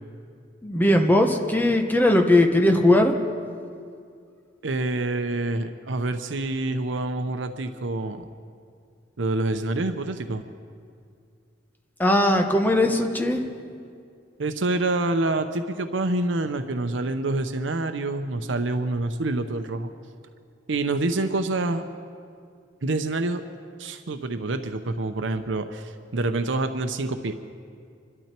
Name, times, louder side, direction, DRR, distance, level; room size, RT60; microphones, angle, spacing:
voice 1, 0.6-3.2 12.0-13.4, left 1 dB, 10° left, 3 dB, 1.1 m, -19 dB
voice 2, 4.6-8.3 9.2-10.4 14.4-19.9 20.7-21.8 22.8-23.4 23.8-27.3, right 2 dB, 85° right, 8 dB, 0.8 m, -27 dB
26.0 x 12.5 x 4.5 m, 2.3 s
head